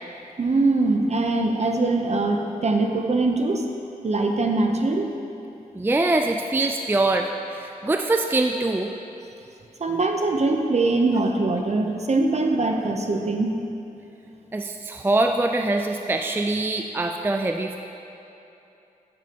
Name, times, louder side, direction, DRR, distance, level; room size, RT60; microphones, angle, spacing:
voice 1, 0.4-3.6 4.0-5.1 9.8-13.6, right 2 dB, 45° right, 3 dB, 0.7 m, -22 dB
voice 2, 5.8-8.9 14.5-17.8, right 2 dB, 15° right, 4 dB, 0.3 m, -23 dB
9.2 x 6.8 x 2.9 m, 2.9 s
cardioid pair, 60°, 15 cm